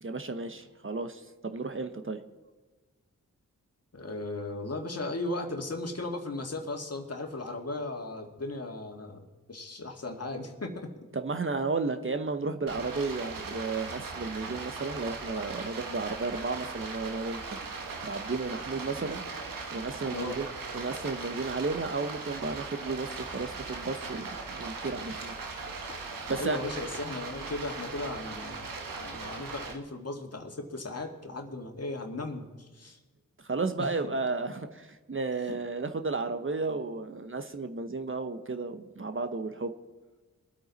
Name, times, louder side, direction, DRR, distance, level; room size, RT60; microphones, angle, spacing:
voice 1, 0.0-2.2 11.1-17.6 18.0-19.3 19.7-20.5 20.7-25.3 26.3-26.6 33.4-39.7, right 3 dB, 40° right, 8 dB, 1.0 m, -33 dB
voice 2, 3.9-10.9 20.1-20.4 25.9-28.7 29.0-33.0 33.8-33.9 35.5-35.6, left 2 dB, 45° left, 3 dB, 2.0 m, -37 dB
Stream, 12.7-29.7, right 4 dB, 80° right, 1.4 m, -39 dB
21.5 x 8.5 x 4.1 m, 1.3 s
cardioid pair, 40°, 33 cm